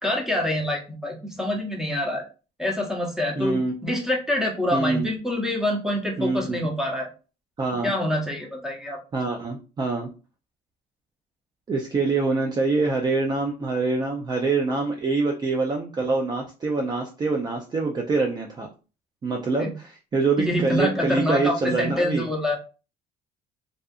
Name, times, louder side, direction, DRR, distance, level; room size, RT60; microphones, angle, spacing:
voice 1, 0.0-2.2 2.6-7.1 7.8-9.0 19.6-19.7 20.4-22.6, left 1 dB, 5° right, 0 dB, 0.8 m, -26 dB
voice 2, 3.4-3.7 4.7-5.1 6.2-6.6 7.6-7.9 9.1-10.1 11.7-18.7 19.2-22.3, right 3 dB, 25° right, 2 dB, 0.4 m, -25 dB
2.6 x 2.3 x 2.3 m, 0.33 s
cardioid pair, 110°, 17 cm